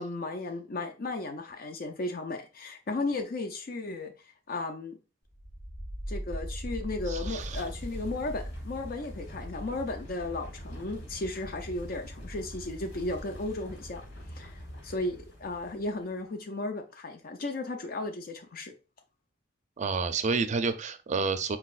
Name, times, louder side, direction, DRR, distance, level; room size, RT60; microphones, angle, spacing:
voice 1, 0.0-5.0 6.1-14.0 14.3-18.7, left 2 dB, 50° left, 0.5 m, -35 dB
sound 1, 5.3-16.1, equal, 70° left, 2.2 m, -41 dB
voice 2, 7.1-7.6 19.8-21.6, right 4 dB, 40° right, 0.5 m, -29 dB
4.4 x 4.0 x 2.4 m
head